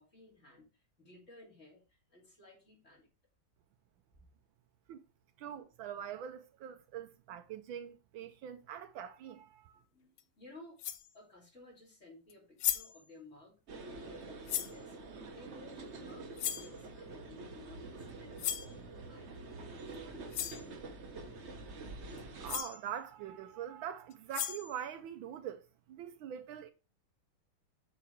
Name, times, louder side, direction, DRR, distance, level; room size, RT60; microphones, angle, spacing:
voice 1, 0.0-3.1 4.1-4.2 9.7-10.8 11.1-13.6 13.9-15.0 15.3-18.6 19.0-20.3, left 2 dB, 35° left, 3.2 m, -57 dB
voice 2, 5.4-9.8 22.4-26.7, right 9 dB, 75° right, 1.4 m, -43 dB
sound 1, 10.2-10.3 10.8-11.1 12.3-12.4 12.6-13.0 14.5-14.8 16.4-16.7 18.4-18.7 19.9-20.0 20.3-20.6 22.2-22.3 22.5-22.8 24.1-24.8, left 10 dB, 70° left, 1.0 m, -36 dB
sound 2, 13.7-22.6, right 3 dB, 45° right, 1.0 m, -47 dB
7.7 x 3.9 x 4.5 m
omnidirectional pair, 2.3 m